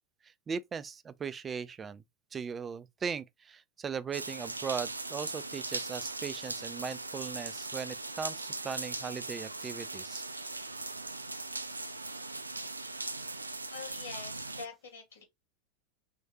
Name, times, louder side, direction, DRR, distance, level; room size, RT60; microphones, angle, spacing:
voice 1, 0.5-2.0 2.3-10.2, right 6 dB, 25° right, 0.4 m, -38 dB
sound 1, 4.1-14.7, right 3 dB, 90° right, 0.4 m, -39 dB
voice 2, 13.7-15.2, left 5 dB, 70° left, 2.2 m, -45 dB
4.1 x 3.2 x 2.9 m
figure-of-eight pair, 85°, 0 cm